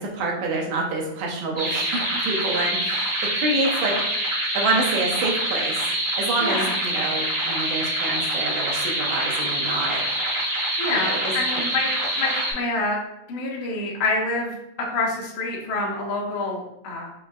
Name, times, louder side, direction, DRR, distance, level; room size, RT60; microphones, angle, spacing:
voice 1, 0.1-3.9 4.2-10.0 10.9-11.3, right 2 dB, 75° right, -1 dB, 2.1 m, -27 dB
sound 1, 1.6-12.5, right 1 dB, 40° right, 0.8 m, -25 dB
voice 2, 6.4-6.7 10.8-13.0 13.3-14.5 14.9-17.1, left 2 dB, 75° left, -2 dB, 1.5 m, -27 dB
5.3 x 3.0 x 2.4 m, 0.81 s
omnidirectional pair, 3.5 m